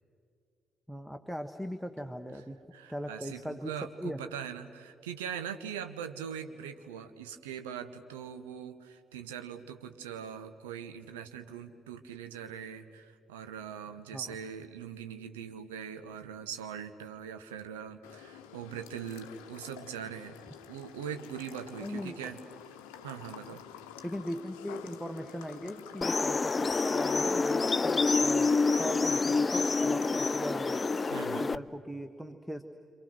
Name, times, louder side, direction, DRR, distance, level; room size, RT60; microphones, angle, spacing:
voice 1, 0.9-2.6 2.9-4.2 14.1-14.4 21.8-22.4 24.0-30.8 31.4-32.6, equal, ahead, 8 dB, 1.3 m, -39 dB
voice 2, 2.7-20.4 20.7-22.4 23.0-23.6 31.1-31.6, right 8 dB, 75° right, 9 dB, 1.1 m, -41 dB
sound 1, 18.0-31.2, left 9 dB, 70° left, 0.9 m, -49 dB
sound 2, 26.0-31.6, left 4 dB, 30° left, 0.5 m, -27 dB
28.5 x 27.0 x 6.3 m, 2.4 s
figure-of-eight pair, 40°, 0 cm